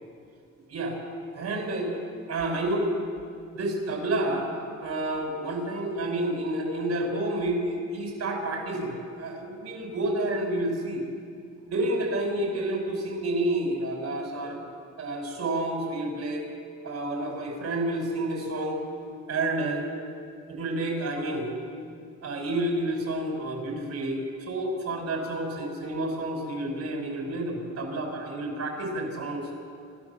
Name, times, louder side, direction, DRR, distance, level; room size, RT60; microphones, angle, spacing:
voice 1, 0.7-1.0 1.3-1.9 2.3-2.9 3.5-4.5 4.8-11.0 11.7-14.6 15.0-16.5 16.8-18.8 19.3-19.9 20.5-21.5 22.2-29.5, right 1 dB, 60° right, 1 dB, 5.9 m, -29 dB
27.5 x 13.0 x 7.3 m, 2.3 s
cardioid pair, 90°, 30 cm